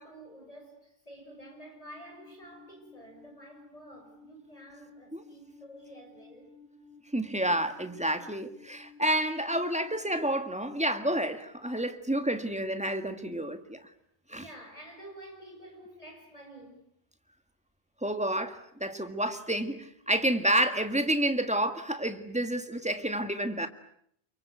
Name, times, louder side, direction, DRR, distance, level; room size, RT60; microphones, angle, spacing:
voice 1, 0.0-6.5 14.3-16.8, right 1 dB, 35° left, 6.7 m, -50 dB
Alarm, 1.3-10.2, left 3 dB, 85° left, 7.2 m, -55 dB
voice 2, 7.1-13.8 14.3-14.5 18.0-23.7, right 1 dB, 5° right, 1.8 m, -29 dB
29.5 x 23.5 x 8.2 m
omnidirectional pair, 1.1 m